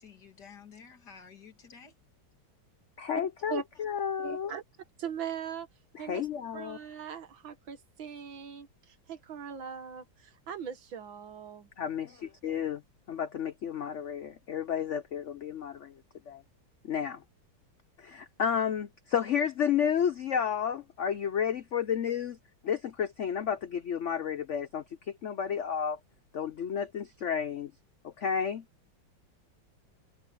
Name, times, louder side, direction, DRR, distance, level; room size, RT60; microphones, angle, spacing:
voice 1, 0.0-1.9, left 6 dB, 55° left, 3.0 m, -52 dB
voice 2, 3.0-4.5 6.1-6.8 11.8-12.1 12.4-12.8 13.1-15.9 16.3-16.4 16.8-17.2 18.0-22.4 22.6-24.8 25.2-26.0 26.3-27.7 28.0-28.6, left 8 dB, 80° left, 0.6 m, -31 dB
voice 3, 4.2-4.6 5.0-5.7 6.0-6.2 6.5-11.7, right 8 dB, 80° right, 2.4 m, -40 dB
omnidirectional pair, 2.1 m